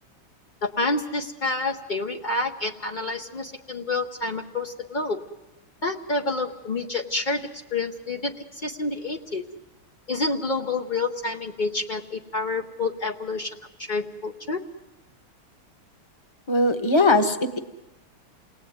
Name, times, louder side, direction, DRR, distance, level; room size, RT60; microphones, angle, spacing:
voice 1, 0.6-5.2 5.8-9.4 10.1-14.6, left 3 dB, 65° left, 3 dB, 0.4 m, -28 dB
voice 2, 16.5-17.6, left 2 dB, 20° left, 9 dB, 0.7 m, -20 dB
28.5 x 19.5 x 9.4 m, 1.0 s
omnidirectional pair, 2.4 m